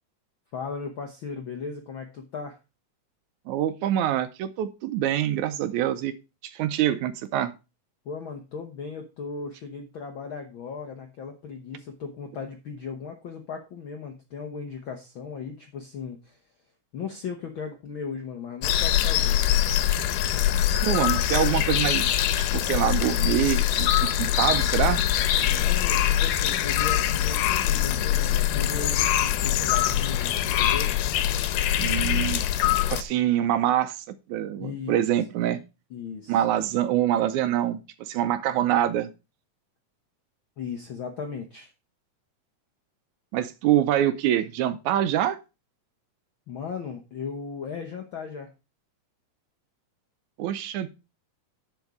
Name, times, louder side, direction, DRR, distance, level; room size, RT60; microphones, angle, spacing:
voice 1, 0.5-2.6 8.0-16.4 16.9-19.5 25.4-30.9 34.6-35.1 35.9-36.4 40.6-41.7 46.5-48.5, left 5 dB, 70° left, 4 dB, 1.2 m, -37 dB
voice 2, 3.5-6.1 6.4-7.5 20.8-22.2 22.5-25.1 31.8-35.6 36.3-39.1 43.3-45.4 50.4-50.9, right 11 dB, 75° right, 12 dB, 1.9 m, -25 dB
sound 1, 18.6-33.0, left 12 dB, 85° left, 2.4 m, -23 dB
10.5 x 5.4 x 4.7 m, 0.29 s
omnidirectional pair, 3.7 m